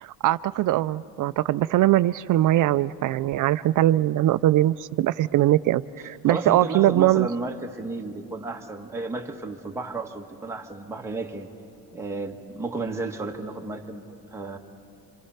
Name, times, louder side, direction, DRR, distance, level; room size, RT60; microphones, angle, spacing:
voice 1, 0.0-7.3, right 14 dB, 55° right, 15 dB, 0.5 m, -21 dB
voice 2, 6.2-11.5 11.9-14.0 14.3-14.6, right 3 dB, 5° right, 0 dB, 1.6 m, -32 dB
27.0 x 26.5 x 5.7 m, 2.5 s
cardioid pair, 120°, 38 cm